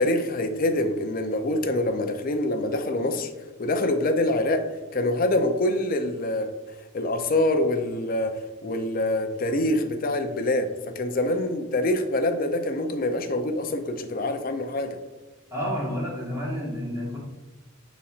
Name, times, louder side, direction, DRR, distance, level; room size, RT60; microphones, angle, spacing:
voice 1, 0.0-3.3 3.6-4.6 4.9-6.5 6.9-15.0, left 1 dB, 40° left, 7 dB, 0.4 m, -25 dB
voice 2, 15.5-17.2, equal, 15° right, -5 dB, 1.4 m, -30 dB
5.3 x 4.0 x 2.4 m, 1.2 s
head